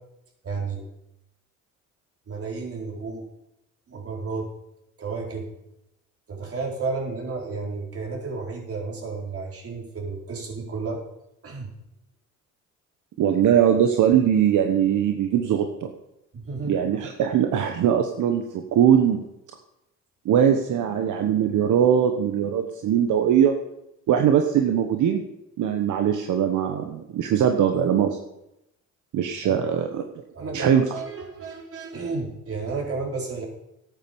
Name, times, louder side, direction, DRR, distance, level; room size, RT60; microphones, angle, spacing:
voice 1, 0.4-0.8 2.3-3.2 3.9-4.5 5.0-5.5 6.3-11.0 11.4-11.7 16.3-16.8 29.4-29.6 30.3-33.5, right 4 dB, 50° right, -1 dB, 4.4 m, -32 dB
voice 2, 13.2-15.9 16.6-19.2 20.2-23.5 24.1-25.2 25.6-28.2 29.1-30.0 30.5-30.8, right 9 dB, 75° right, 5 dB, 1.2 m, -21 dB
12.5 x 8.9 x 7.0 m, 0.86 s
cardioid pair, 90°, 30 cm